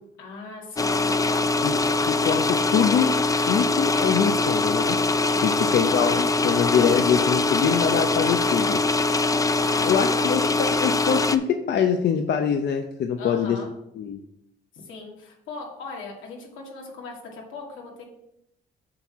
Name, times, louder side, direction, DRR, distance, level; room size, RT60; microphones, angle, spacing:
voice 1, 0.2-1.5 5.3-5.8 9.5-10.3 13.2-13.7 14.7-18.1, left 3 dB, 85° left, -1 dB, 2.2 m, -39 dB
sound 1, 0.8-11.4, left 3 dB, 15° left, 0.5 m, -23 dB
voice 2, 2.0-3.1 3.5-5.0 5.4-8.8 9.8-13.6 14.0-14.2, left 7 dB, 60° left, 5 dB, 0.7 m, -24 dB
7.7 x 4.5 x 6.0 m, 0.81 s
cardioid pair, 90°, 20 cm